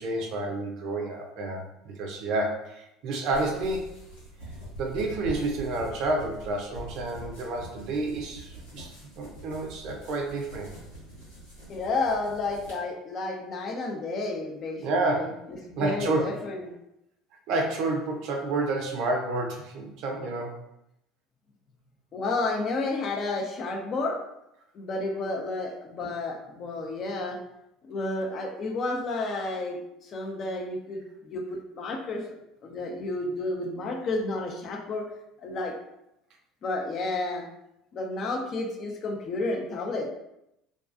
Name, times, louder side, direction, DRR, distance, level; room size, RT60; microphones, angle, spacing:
voice 1, 0.0-3.9 4.8-10.7 14.8-15.4 15.8-16.2 17.5-20.6, right 2 dB, 60° right, 1 dB, 0.5 m, -30 dB
sound 1, 3.3-12.8, right 1 dB, 90° left, 1.2 m, -44 dB
voice 2, 11.7-15.3 15.7-16.7 22.1-24.2 24.7-27.4 27.8-32.2 32.6-35.0 35.4-35.7 36.6-37.5 37.9-40.1, left 2 dB, 45° left, 1 dB, 0.5 m, -31 dB
2.4 x 2.1 x 2.4 m, 0.83 s
hypercardioid pair, 75°, 0 cm